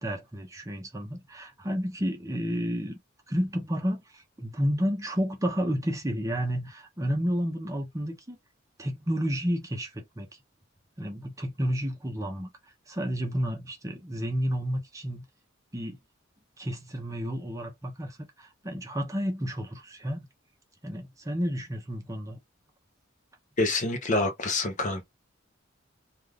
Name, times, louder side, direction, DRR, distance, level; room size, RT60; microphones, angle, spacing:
voice 1, 0.0-3.0 3.3-8.4 8.8-10.3 11.0-12.5 12.9-15.2 15.7-16.0 16.6-20.3 20.8-22.4, equal, 15° right, 0.6 m, -31 dB
voice 2, 23.6-25.0, left 2 dB, 40° left, 0.7 m, -27 dB
2.5 x 2.4 x 3.3 m
head